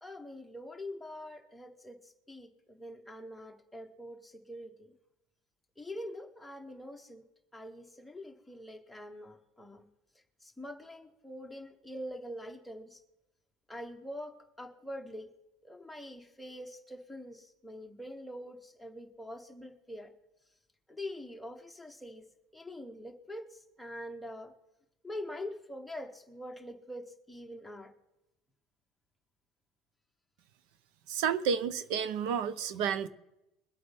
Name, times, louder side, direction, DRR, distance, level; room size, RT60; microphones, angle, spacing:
voice 1, 0.0-4.9 5.8-7.2 7.5-9.8 10.4-13.0 13.7-15.3 15.6-20.1 20.9-22.2 22.5-24.5 25.0-27.9, left 1 dB, ahead, 0.9 m, -44 dB
voice 2, 31.1-33.1, right 7 dB, 60° right, 0.6 m, -31 dB
22.0 x 8.5 x 3.5 m
cardioid pair, 170°, 0 cm